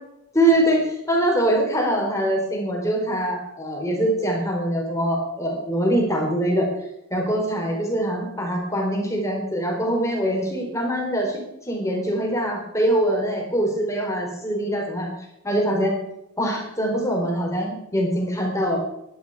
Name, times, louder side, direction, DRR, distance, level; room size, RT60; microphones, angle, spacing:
voice 1, 0.3-6.7 7.1-15.1 15.4-16.0 16.4-18.8, right 1 dB, 15° left, 0 dB, 4.1 m, -23 dB
16.0 x 11.5 x 4.9 m, 0.83 s
head